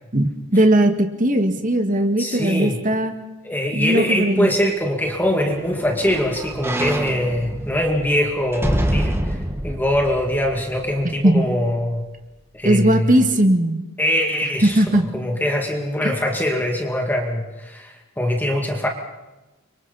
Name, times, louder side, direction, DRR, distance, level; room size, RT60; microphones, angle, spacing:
voice 1, 0.1-3.1 3.7-4.5 11.2-11.5 12.6-13.8 14.6-15.1 16.0-16.1, right 1 dB, 40° right, 5 dB, 1.9 m, -18 dB
voice 2, 2.2-2.8 3.4-9.4 9.6-12.0 12.5-13.1 14.0-14.8 15.1-18.9, left 1 dB, 10° left, 1 dB, 2.4 m, -22 dB
sound 1, 5.0-11.2 11.7-11.8, right 1 dB, 10° right, 1.5 m, -27 dB
30.0 x 25.5 x 4.2 m, 1.1 s
head